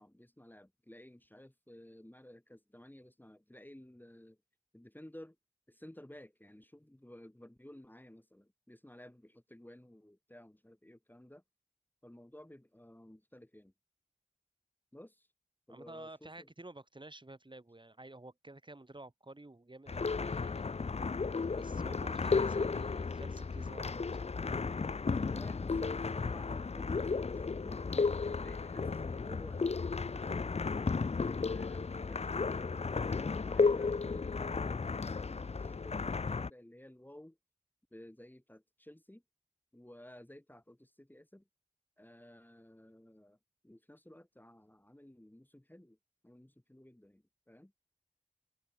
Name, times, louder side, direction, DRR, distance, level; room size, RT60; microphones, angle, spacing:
voice 1, 0.0-4.4 4.7-5.4 5.7-11.4 12.0-13.7 14.9-15.3 15.7-16.5 21.7-21.9 25.2-27.8 28.4-37.4 37.9-39.2 39.7-41.4 42.0-43.4 43.6-46.0 46.2-47.7, left 1 dB, 15° left, 3.2 m, -55 dB
voice 2, 15.7-20.7 21.5-24.3, right 2 dB, 35° right, 4.1 m, -51 dB
sound 1, 19.9-36.5, left 4 dB, 55° left, 0.6 m, -34 dB
wide cardioid pair, 50°, 13 cm